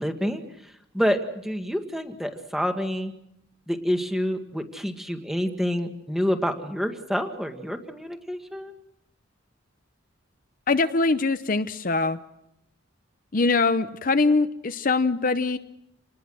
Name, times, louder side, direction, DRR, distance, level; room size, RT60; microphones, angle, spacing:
voice 1, 0.0-3.1 3.7-8.7, equal, ahead, 6 dB, 1.7 m, -28 dB
voice 2, 10.7-12.2 13.3-15.6, left 3 dB, 45° left, 11 dB, 0.8 m, -23 dB
28.0 x 20.0 x 6.4 m, 0.79 s
head